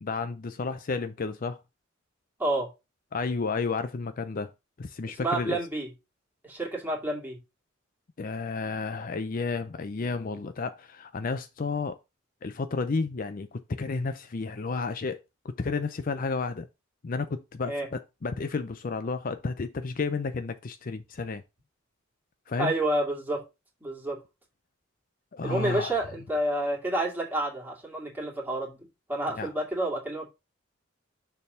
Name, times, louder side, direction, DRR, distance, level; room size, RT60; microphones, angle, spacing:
voice 1, 0.0-1.6 3.1-4.5 4.8-5.6 8.2-12.0 12.4-16.7 17.0-21.4 22.5-22.7 25.3-26.0 29.3-29.5, left 4 dB, 45° left, 0.5 m, -32 dB
voice 2, 5.0-5.9 6.4-7.4 17.7-17.9 22.6-23.4 23.8-24.2 25.4-30.3, right 1 dB, 10° right, 2.4 m, -29 dB
6.7 x 3.5 x 5.5 m
head